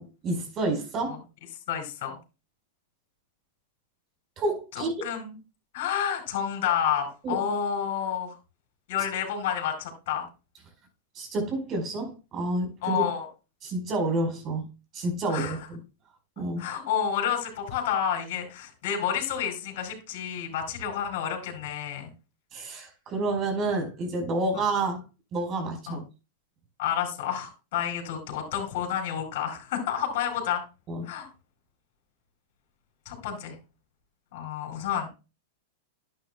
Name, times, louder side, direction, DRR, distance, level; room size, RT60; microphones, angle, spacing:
voice 1, 0.2-1.2 4.4-5.1 7.2-7.4 11.1-13.0 13.6-14.7 14.9-15.8 16.4-16.7 22.5-25.0 25.3-26.0 30.9-31.0, right 2 dB, 35° right, 4.8 m, -29 dB
voice 2, 1.7-2.2 4.7-5.4 5.7-8.3 8.9-10.3 12.8-13.3 15.3-15.6 16.6-22.1 24.5-24.6 25.9-26.0 26.8-30.6 31.0-31.3 33.0-33.6 34.3-35.1, left 9 dB, 60° left, 4.5 m, -30 dB
11.5 x 9.3 x 2.3 m
hypercardioid pair, 120°, 0 cm